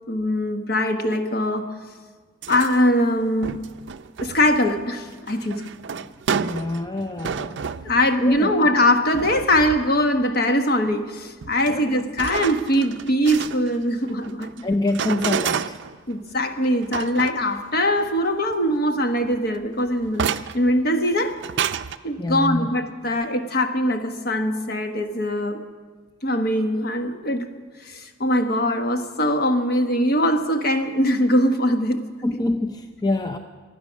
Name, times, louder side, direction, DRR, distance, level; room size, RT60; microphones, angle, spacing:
voice 1, 0.1-1.7 2.5-3.6 4.2-5.6 7.8-14.5 16.1-21.4 22.0-25.7 26.2-27.5 27.9-32.0, left 1 dB, 50° left, 6 dB, 1.2 m, -22 dB
sound 1, 2.4-2.9 3.4-8.6 9.1-10.3 10.9-11.0 11.4-16.1 16.6-18.2 18.5-18.6 18.9-20.7 21.1-22.0, right 6 dB, 65° right, 0.5 m, -31 dB
voice 2, 6.0-7.6 8.2-8.5 11.7-12.0 14.6-15.8 22.2-22.7 32.2-33.4, left 2 dB, 20° left, 6 dB, 0.5 m, -26 dB
23.5 x 9.3 x 6.3 m, 1.5 s
head